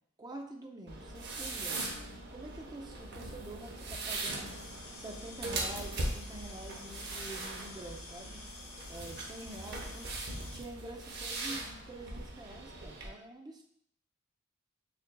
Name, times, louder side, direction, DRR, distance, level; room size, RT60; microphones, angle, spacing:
voice 1, 0.2-1.9 2.3-4.6 4.9-8.4 8.9-10.1 10.5-13.6, right 1 dB, 20° right, 3 dB, 0.5 m, -47 dB
sound 1, 0.9-13.1, right 2 dB, 50° right, 0.7 m, -40 dB
sound 2, 4.4-10.6, left 3 dB, 80° left, 0.8 m, -50 dB
6.6 x 2.5 x 2.2 m, 0.67 s
head